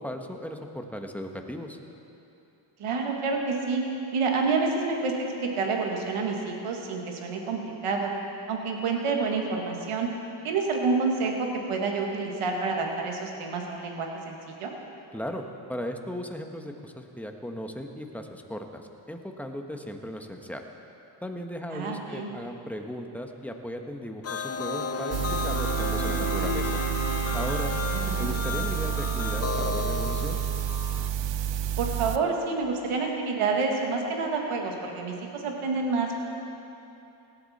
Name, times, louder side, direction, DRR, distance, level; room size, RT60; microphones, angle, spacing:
voice 1, 0.0-1.8 15.1-15.4 15.7-20.6 21.2-26.8 27.3-27.7 28.2-30.4, equal, 5° left, 4 dB, 1.3 m, -37 dB
voice 2, 2.8-3.8 4.1-5.1 5.4-8.1 8.5-10.1 10.4-14.7 21.7-22.3 28.0-28.3 31.8-36.2, right 4 dB, 90° right, 1 dB, 1.7 m, -28 dB
sound 1, 24.2-31.1, left 6 dB, 30° left, 0.5 m, -35 dB
sound 2, 24.5-29.5, equal, 60° left, 2.9 m, -34 dB
sound 3, 25.1-32.2, right 9 dB, 60° right, 0.7 m, -29 dB
17.5 x 12.0 x 4.2 m, 2.8 s
cardioid pair, 55°, 50 cm